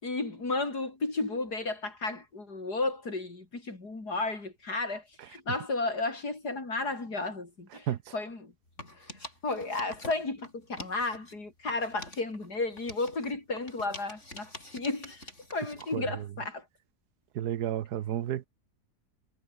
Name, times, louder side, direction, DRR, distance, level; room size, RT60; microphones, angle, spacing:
voice 1, 0.0-8.5 9.4-16.7, left 3 dB, 85° left, 5.5 m, -33 dB
sound 1, 8.7-11.4 11.7-16.0, left 1 dB, 45° left, 8.0 m, -47 dB
voice 2, 15.9-16.2 17.3-18.5, right 11 dB, 85° right, 1.5 m, -32 dB
omnidirectional pair, 1.7 m